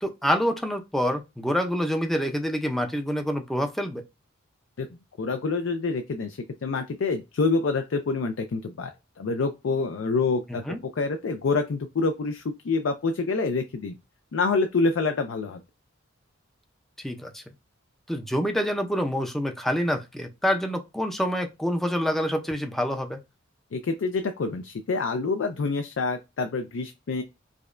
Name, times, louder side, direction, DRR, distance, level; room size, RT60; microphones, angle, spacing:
voice 1, 0.0-4.0 10.5-10.8 17.0-17.4 18.1-23.2, equal, ahead, 0.5 m, -27 dB
voice 2, 5.2-8.9 9.2-14.0 14.3-15.6 23.7-27.2, left 4 dB, 65° left, 0.4 m, -27 dB
5.0 x 2.2 x 2.4 m
head